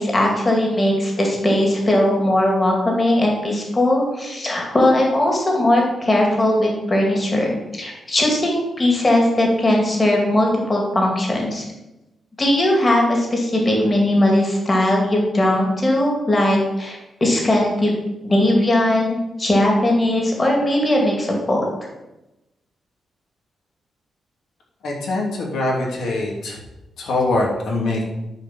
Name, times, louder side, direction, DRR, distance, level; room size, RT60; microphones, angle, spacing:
voice 1, 0.0-11.6 12.4-17.9 18.2-21.7, left 1 dB, 20° left, 0 dB, 2.2 m, -19 dB
voice 2, 24.8-26.6 27.0-28.0, left 2 dB, 75° left, -2 dB, 2.9 m, -23 dB
10.0 x 4.9 x 7.3 m, 0.97 s
wide cardioid pair, 175°, 0 cm